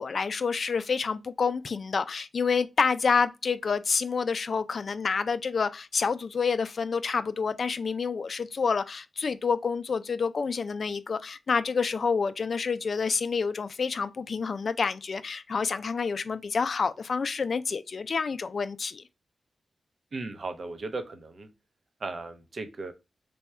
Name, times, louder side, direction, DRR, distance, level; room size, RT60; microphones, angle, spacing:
voice 1, 0.0-19.0, left 5 dB, 65° left, 0.4 m, -28 dB
voice 2, 20.1-21.5 22.0-22.9, right 3 dB, 60° right, 0.7 m, -36 dB
3.4 x 2.3 x 4.2 m
cardioid pair, 50°, 0 cm